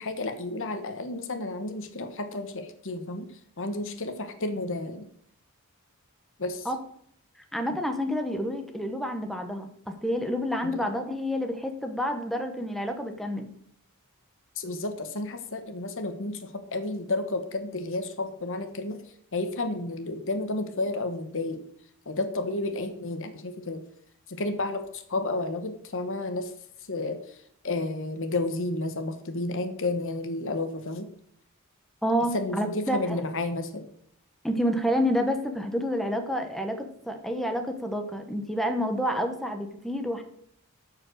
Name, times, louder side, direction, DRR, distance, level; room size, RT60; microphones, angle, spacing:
voice 1, 0.0-3.3 3.6-5.1 6.4-6.7 10.6-10.8 14.6-19.0 19.3-21.6 22.1-23.8 24.3-26.5 26.9-27.4 27.6-31.1 32.3-33.9, left 2 dB, 60° left, 8 dB, 1.2 m, -31 dB
voice 2, 7.5-13.5 32.0-33.2 34.4-40.2, equal, ahead, 4 dB, 1.0 m, -29 dB
12.5 x 4.9 x 6.4 m, 0.66 s
head